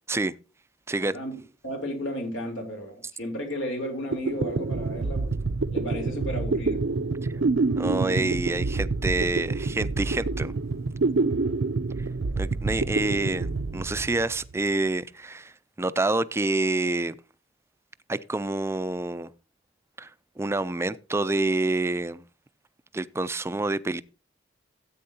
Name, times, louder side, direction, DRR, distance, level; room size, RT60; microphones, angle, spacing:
voice 1, 0.9-1.3 1.6-5.2 5.7-6.8 12.8-12.9, equal, 85° left, 3.7 m, -33 dB
sound 1, 3.8-3.9 4.1-14.6, right 3 dB, 70° right, 0.5 m, -27 dB
voice 2, 7.8-10.5 12.4-15.5 15.8-17.2 18.1-19.3 20.0-20.1 20.4-22.2 22.9-24.0, right 2 dB, 15° right, 0.4 m, -27 dB
13.5 x 8.6 x 2.8 m
head